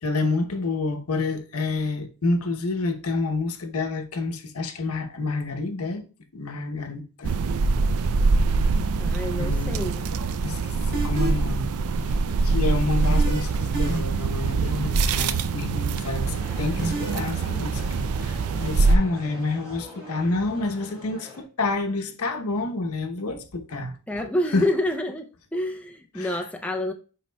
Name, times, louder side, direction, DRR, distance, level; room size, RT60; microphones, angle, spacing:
voice 1, 0.0-6.0 6.3-7.4 9.4-9.8 10.4-11.7 12.0-12.1 12.4-24.7 26.1-26.5, left 3 dB, 80° left, 0.9 m, -29 dB
sound 1, 7.2-19.0, right 4 dB, 80° right, 0.4 m, -24 dB
voice 2, 9.0-10.0 24.1-26.9, left 1 dB, 5° left, 0.5 m, -28 dB
sound 2, 10.9-11.5 13.0-13.4 13.7-14.3 16.8-17.1, right 2 dB, 50° right, 3.0 m, -28 dB
sound 3, 16.2-21.4, left 1 dB, 30° right, 3.7 m, -44 dB
10.5 x 4.2 x 2.2 m
head